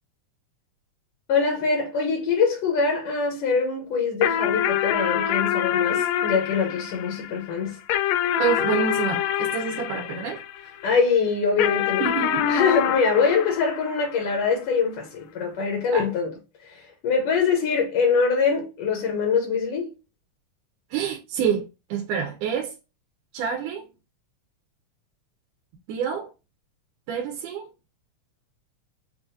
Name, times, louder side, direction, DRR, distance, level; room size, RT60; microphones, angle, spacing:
voice 1, 1.3-7.8 10.8-12.1 12.5-16.4 16.6-19.9, left 5 dB, 70° left, 1.4 m, -23 dB
sound 1, 4.2-10.9 11.6-14.4, left 10 dB, 90° left, 1.5 m, -26 dB
voice 2, 8.4-10.7 12.0-12.5 15.9-16.1 20.9-22.7 23.3-23.9 25.9-26.3 27.1-27.7, right 7 dB, 85° right, 2.2 m, -27 dB
5.9 x 2.3 x 2.6 m
omnidirectional pair, 3.6 m